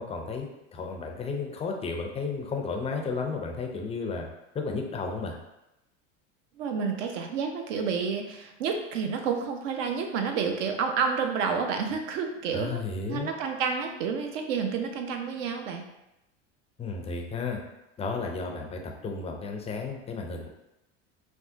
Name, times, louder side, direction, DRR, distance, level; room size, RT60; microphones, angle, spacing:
voice 1, 0.0-4.3 4.5-5.4 12.5-13.3 16.8-17.6 18.0-20.5, left 4 dB, 20° left, 2 dB, 0.3 m, -33 dB
voice 2, 6.6-12.8 13.1-15.8, right 6 dB, 75° right, 4 dB, 0.6 m, -29 dB
3.4 x 2.1 x 2.6 m, 0.90 s
hypercardioid pair, 95°, 37 cm